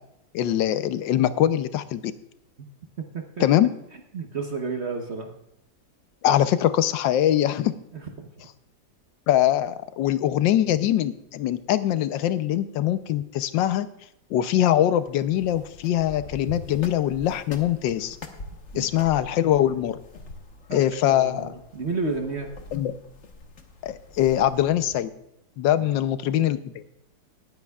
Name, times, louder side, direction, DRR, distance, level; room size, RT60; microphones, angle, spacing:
voice 1, 0.3-2.1 3.4-3.7 6.2-7.7 9.3-13.9 14.3-18.2 18.7-20.0 20.7-21.5 22.7-22.9 23.8-25.1 25.6-26.6, left 11 dB, 75° left, 12 dB, 1.4 m, -22 dB
voice 2, 4.1-5.3 7.9-8.3 18.7-18.9 20.7-22.5 25.7-26.0, right 4 dB, 45° right, 4 dB, 1.0 m, -32 dB
sound 1, 15.0-25.0, left 2 dB, 45° left, 1.3 m, -44 dB
20.0 x 9.7 x 2.4 m, 0.83 s
omnidirectional pair, 2.1 m